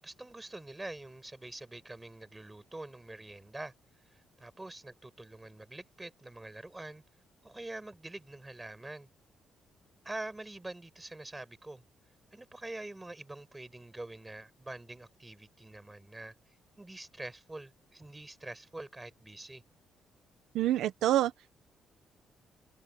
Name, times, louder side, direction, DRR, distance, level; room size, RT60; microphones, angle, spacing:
voice 1, 0.0-3.7 4.1-7.0 7.4-9.1 10.0-11.8 12.3-16.3 16.7-19.6, right 2 dB, 15° right, 7.9 m, -45 dB
voice 2, 20.5-21.5, right 13 dB, 80° right, 1.3 m, -27 dB
cardioid pair, 90°, 0 cm